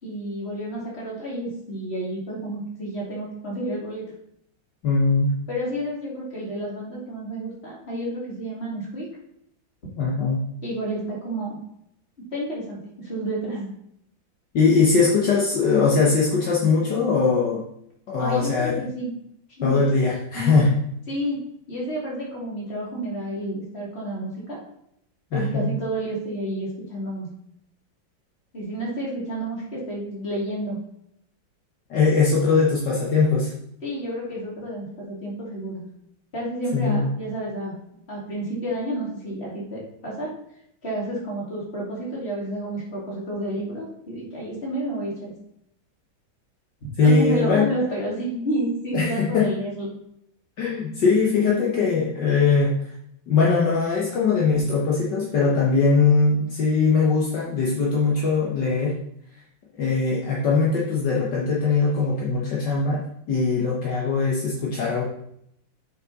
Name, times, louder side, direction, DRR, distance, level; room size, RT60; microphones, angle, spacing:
voice 1, 0.0-4.1 5.5-9.1 10.6-11.6 12.3-13.7 18.2-19.1 19.6-19.8 20.3-20.5 21.1-24.6 25.3-27.3 28.5-30.8 33.8-35.8 36.3-37.8 38.1-40.3 40.8-45.3 47.0-49.9, right 1 dB, 30° left, -4 dB, 3.0 m, -30 dB
voice 2, 4.8-5.3 10.0-10.4 14.5-17.6 18.1-18.8 19.6-20.8 25.3-25.7 31.9-33.6 36.7-37.1 47.0-47.7 48.9-49.5 50.6-52.8 53.3-59.0 59.8-65.0, left 4 dB, 65° left, -4 dB, 1.8 m, -21 dB
7.4 x 5.8 x 4.1 m, 0.74 s
omnidirectional pair, 2.1 m